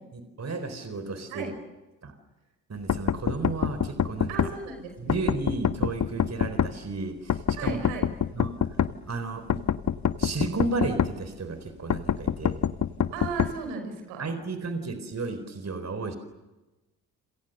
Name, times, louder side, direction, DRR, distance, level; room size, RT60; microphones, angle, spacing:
voice 1, 0.1-1.5 2.0-2.1 2.7-4.5 5.0-7.8 8.3-8.5 9.1-9.6 10.2-12.7 14.2-16.2, right 3 dB, 35° right, 9 dB, 4.2 m, -33 dB
sound 1, 2.9-4.5 5.1-6.7 7.3-8.9 9.5-11.1 11.9-13.5, left 8 dB, 40° left, 1.2 m, -25 dB
voice 2, 4.3-5.2 7.5-8.1 13.1-14.3, right 4 dB, 75° right, 5 dB, 6.0 m, -36 dB
29.5 x 27.5 x 6.7 m, 1.1 s
figure-of-eight pair, 45°, 45 cm